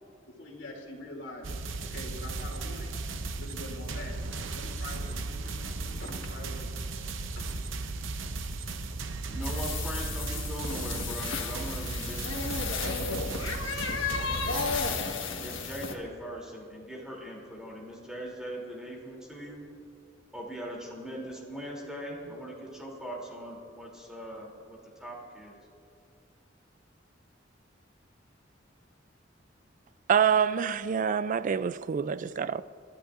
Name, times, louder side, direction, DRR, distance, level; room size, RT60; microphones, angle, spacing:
voice 1, 0.3-1.5 1.8-4.2 4.5-7.0 7.4-7.6, left 2 dB, 70° left, 2.8 m, -45 dB
sound 1, 1.4-14.9, right 3 dB, 85° right, 0.8 m, -36 dB
voice 2, 9.3-14.8 15.4-19.6 20.3-25.6, equal, 5° right, 2.9 m, -41 dB
sound 2, 9.4-15.9, left 4 dB, 90° left, 1.4 m, -33 dB
voice 3, 30.1-32.6, right 7 dB, 45° right, 0.3 m, -26 dB
28.5 x 13.0 x 2.5 m
head